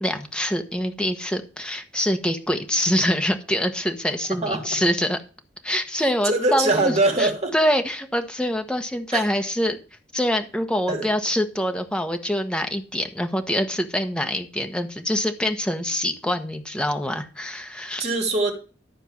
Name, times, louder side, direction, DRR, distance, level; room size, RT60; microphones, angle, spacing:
voice 1, 0.0-5.2 5.6-6.9 7.2-9.8 10.1-18.0, equal, 5° left, 1.2 m, -25 dB
voice 2, 6.2-7.5 9.1-9.2 10.9-11.1 18.0-18.5, right 2 dB, 35° right, 3.0 m, -22 dB
12.5 x 4.5 x 7.3 m
head